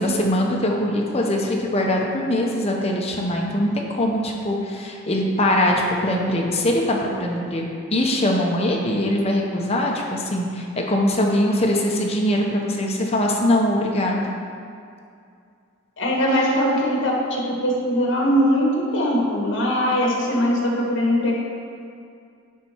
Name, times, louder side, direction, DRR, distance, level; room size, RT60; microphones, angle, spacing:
voice 1, 0.0-14.3, left 1 dB, 30° left, -1 dB, 0.9 m, -22 dB
voice 2, 16.0-21.3, equal, 60° left, -2 dB, 1.7 m, -21 dB
10.5 x 4.2 x 4.6 m, 2.4 s
head